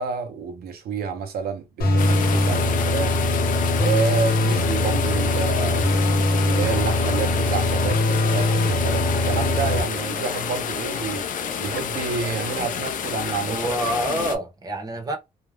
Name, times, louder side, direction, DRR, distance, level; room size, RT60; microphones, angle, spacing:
voice 1, 0.0-3.2 3.8-5.9 6.4-11.3 11.6-13.7 14.3-14.4, right 6 dB, 85° right, 0.5 m, -29 dB
sound 1, 1.8-9.8, left 1 dB, 80° left, 0.8 m, -22 dB
sound 2, 2.0-14.4, left 7 dB, 60° left, 0.4 m, -29 dB
voice 2, 13.5-15.2, right 1 dB, 25° right, 0.7 m, -27 dB
2.3 x 2.1 x 3.1 m
wide cardioid pair, 165°, 16 cm